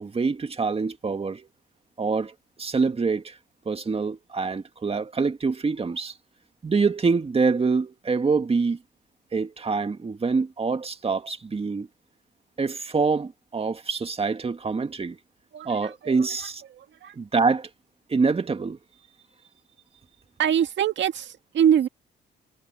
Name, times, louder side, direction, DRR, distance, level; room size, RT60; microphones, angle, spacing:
voice 1, 0.0-1.5 2.0-2.3 2.6-3.4 3.7-6.1 6.6-8.8 9.3-11.9 12.6-15.2 15.6-16.6 17.1-17.7 18.1-18.8, right 4 dB, 30° right, 2.0 m, -25 dB
voice 2, 20.4-21.9, right 9 dB, 65° right, 1.8 m, -22 dB
cardioid pair, 90°, 20 cm